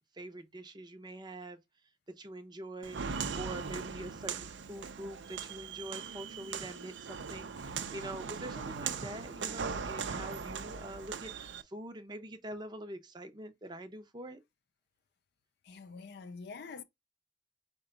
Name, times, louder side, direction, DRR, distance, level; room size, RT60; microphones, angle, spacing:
voice 1, 0.1-1.6 2.2-14.4, right 1 dB, 25° right, 0.6 m, -45 dB
Walk footsteps, 2.8-11.6, right 6 dB, 80° right, 0.5 m, -39 dB
voice 2, 15.6-16.8, left 4 dB, 60° left, 0.4 m, -46 dB
4.8 x 2.2 x 3.8 m
head